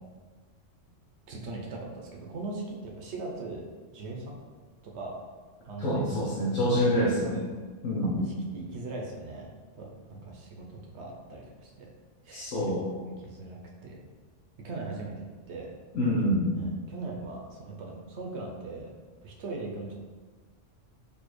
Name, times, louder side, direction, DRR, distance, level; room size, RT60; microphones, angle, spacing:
voice 1, 1.3-3.6 3.9-4.4 4.8-5.2 5.6-6.3 6.7-7.2 8.0-9.5 9.8-11.9 12.2-12.5 12.9-13.9 14.6-15.7 16.5-18.9 19.2-19.9, right 3 dB, 70° right, -1 dB, 0.9 m, -40 dB
voice 2, 5.8-7.4 7.8-8.2 12.3-12.8 15.9-16.6, equal, 90° left, -7 dB, 1.1 m, -26 dB
4.2 x 2.8 x 3.0 m, 1.4 s
omnidirectional pair, 1.3 m